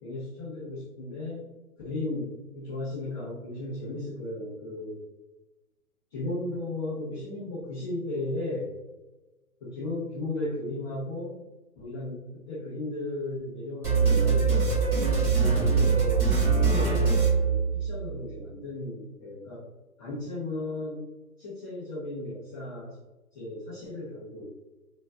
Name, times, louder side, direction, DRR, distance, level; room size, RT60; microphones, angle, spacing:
voice 1, 0.0-1.5 1.8-5.0 6.1-8.7 9.6-11.4 11.8-14.8 15.2-19.6 20.0-21.0 21.4-23.0 23.3-24.5, left 2 dB, 20° left, -7 dB, 0.7 m, -35 dB
sound 1, 13.8-18.1, right 5 dB, 5° right, 1.4 m, -23 dB
5.1 x 2.5 x 2.3 m, 1.1 s
hypercardioid pair, 140°, 46 cm